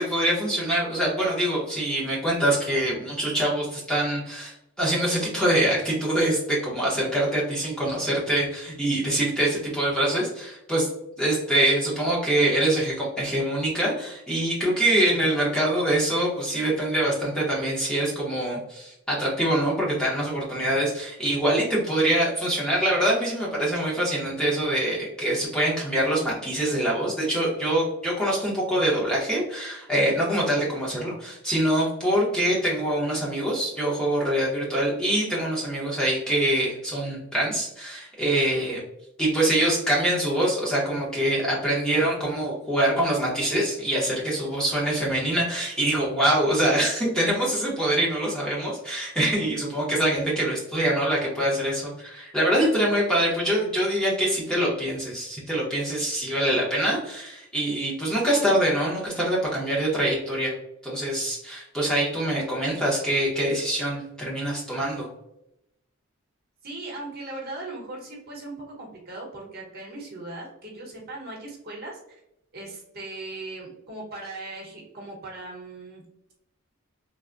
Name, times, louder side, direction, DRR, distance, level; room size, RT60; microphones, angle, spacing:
voice 1, 0.0-10.9 11.2-38.8 39.2-60.5 60.8-65.1, right 1 dB, 5° left, -6 dB, 0.7 m, -24 dB
voice 2, 66.6-72.2 72.5-76.0, right 2 dB, 45° right, -2 dB, 0.9 m, -38 dB
3.3 x 2.1 x 2.4 m, 0.82 s
head